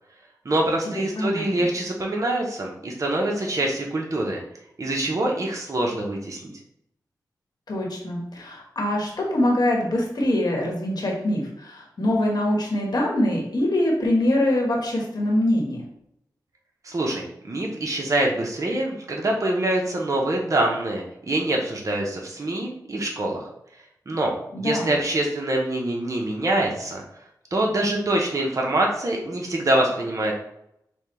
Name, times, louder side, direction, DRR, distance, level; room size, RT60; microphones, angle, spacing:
voice 1, 0.4-4.4 4.8-6.5 16.8-23.5 24.1-24.3 24.6-27.0 27.5-30.3, right 1 dB, 45° right, 0 dB, 0.9 m, -25 dB
voice 2, 1.2-1.7 7.7-15.8 24.5-24.9, left 1 dB, 65° left, -1 dB, 1.3 m, -24 dB
6.3 x 2.3 x 3.2 m, 0.77 s
cardioid pair, 60°, 7 cm